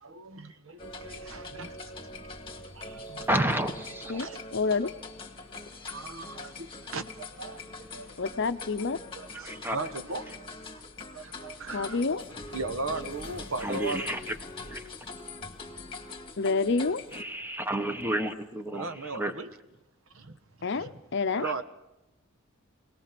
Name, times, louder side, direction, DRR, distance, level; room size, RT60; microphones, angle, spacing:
voice 1, 0.0-0.5 1.1-1.8 2.7-3.3 4.1-4.4 5.9-8.3 8.8-10.6 11.1-14.2 18.7-19.5 20.1-20.4 20.7-21.0 21.3-21.6, right 3 dB, 75° right, 1.1 m, -38 dB
sound 1, 0.8-17.2, left 3 dB, 25° left, 1.9 m, -43 dB
voice 2, 3.3-4.3 9.4-9.8 13.6-14.3 14.7-14.8 17.1-19.3 21.4-21.5, right 1 dB, 10° right, 1.2 m, -31 dB
voice 3, 4.1-4.9 8.2-9.0 11.7-12.2 16.4-17.0 20.6-21.5, left 4 dB, 60° left, 0.7 m, -28 dB
24.5 x 19.0 x 6.0 m
head